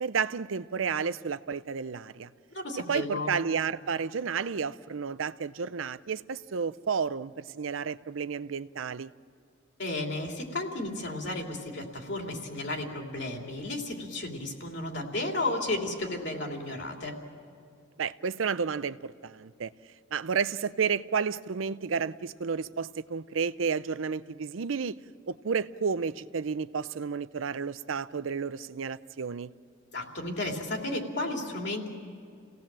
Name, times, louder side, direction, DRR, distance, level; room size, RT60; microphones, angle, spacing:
voice 1, 0.0-2.3 2.9-9.1 18.0-19.7 20.1-25.0 25.3-29.5, right 6 dB, 85° right, 0.6 m, -31 dB
voice 2, 2.5-3.4 9.8-17.2 29.9-31.9, left 2 dB, 60° left, 3.0 m, -33 dB
29.5 x 17.5 x 7.5 m
head